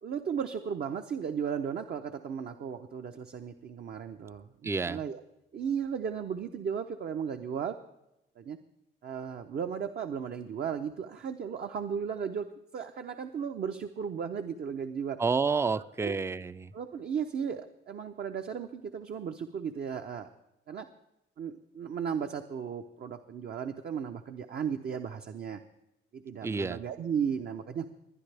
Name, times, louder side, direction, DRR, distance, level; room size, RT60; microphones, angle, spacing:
voice 1, 0.0-5.2 5.5-7.8 8.4-8.6 9.0-15.2 16.0-16.1 16.7-20.3 20.7-20.9 21.4-25.6 26.1-27.9, right 7 dB, 55° right, 5 dB, 0.7 m, -35 dB
voice 2, 4.6-5.0 15.2-16.7 26.4-26.8, right 4 dB, 15° right, 15 dB, 0.4 m, -29 dB
22.0 x 9.9 x 3.4 m, 0.88 s
cardioid pair, 90°, 20 cm